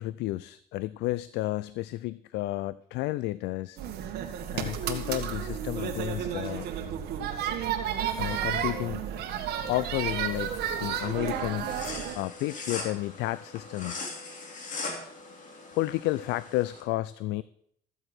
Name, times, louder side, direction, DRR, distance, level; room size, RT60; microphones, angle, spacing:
voice 1, 0.0-3.8 4.5-6.7 8.1-9.0 9.7-10.5 10.8-11.8 12.2-14.1 15.7-17.4, left 17 dB, 85° left, 17 dB, 0.4 m, -31 dB
sound 1, 3.8-12.2, right 9 dB, 75° right, 1.8 m, -32 dB
sound 2, 10.3-16.8, left 3 dB, 50° left, 3.1 m, -40 dB
14.0 x 7.9 x 6.2 m, 0.67 s
cardioid pair, 110°, 17 cm